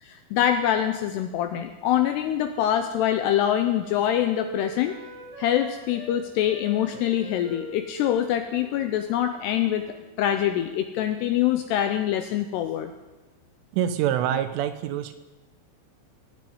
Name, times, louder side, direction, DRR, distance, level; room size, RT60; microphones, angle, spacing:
voice 1, 0.0-5.0 5.4-9.8 10.2-12.9, left 11 dB, 85° left, 7 dB, 2.4 m, -24 dB
Wind instrument woodwind instrument, 2.2-6.1 6.4-10.0 10.2-10.8, right 3 dB, 55° right, 5.6 m, -44 dB
voice 2, 13.7-15.1, right 10 dB, 90° right, 10 dB, 3.5 m, -25 dB
18.0 x 7.7 x 9.3 m, 1.2 s
omnidirectional pair, 5.5 m